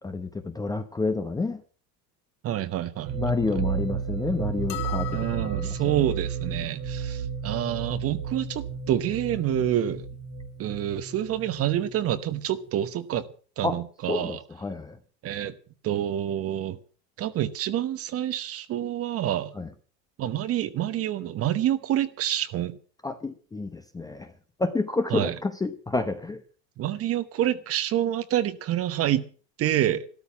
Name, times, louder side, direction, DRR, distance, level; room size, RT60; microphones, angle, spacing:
voice 1, 0.0-1.6 3.1-6.1 13.6-13.8 14.1-15.0 19.5-19.7 23.0-24.3 24.6-26.4, left 3 dB, 10° left, 0.8 m, -29 dB
voice 2, 2.4-3.2 5.1-10.0 10.6-13.2 13.6-14.4 15.2-15.5 15.8-16.8 17.2-19.5 20.2-22.8 25.1-25.3 26.8-29.2 29.6-30.1, right 12 dB, 30° right, 1.0 m, -27 dB
sound 1, 3.1-12.7, right 6 dB, 65° right, 3.1 m, -33 dB
sound 2, 4.7-6.0, left 19 dB, 75° left, 1.9 m, -37 dB
13.0 x 12.5 x 7.1 m
supercardioid pair, 135°, 50 cm